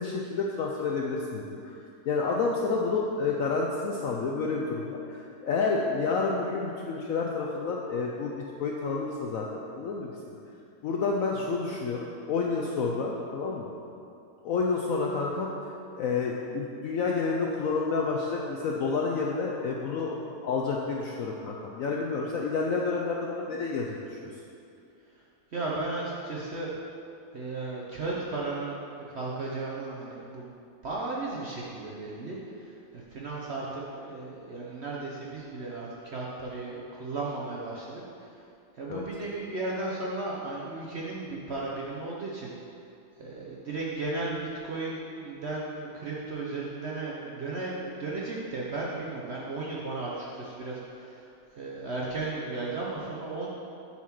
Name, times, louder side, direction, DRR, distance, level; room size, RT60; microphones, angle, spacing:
voice 1, 0.0-1.7 2.0-10.4 10.8-12.0 12.3-13.7 14.4-15.5 16.0-20.1 20.4-24.3 38.9-39.0, left 4 dB, 70° left, -1 dB, 0.8 m, -29 dB
voice 2, 25.5-26.7 27.3-28.8 29.1-30.5 30.8-38.0 38.8-42.5 43.2-51.3 51.5-53.5, right 3 dB, 55° right, -4 dB, 0.7 m, -35 dB
7.2 x 4.3 x 5.9 m, 2.6 s
omnidirectional pair, 1.9 m